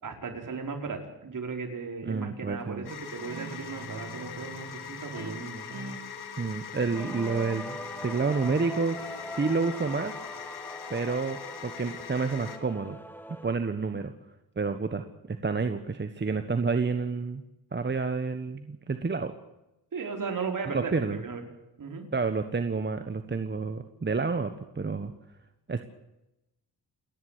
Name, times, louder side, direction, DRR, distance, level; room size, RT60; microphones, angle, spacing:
voice 1, 0.0-5.6 19.9-21.4 21.8-22.1, right 4 dB, 55° right, 3 dB, 5.0 m, -36 dB
voice 2, 2.1-2.9 6.4-9.0 9.3-10.1 10.9-13.0 13.3-14.1 14.6-17.4 17.7-19.3 20.7-21.2 22.1-25.1 25.7-25.8, right 4 dB, 30° right, 8 dB, 1.3 m, -29 dB
sound 1, 2.8-12.6, left 7 dB, 75° left, 2.8 m, -42 dB
Guitar, 3.2-10.4, right 4 dB, 75° right, 3.5 m, -46 dB
Male singing / Female singing / Musical instrument, 6.9-13.5, left 1 dB, 5° left, 1.7 m, -42 dB
29.0 x 11.5 x 8.4 m, 0.93 s
cardioid pair, 110°, 39 cm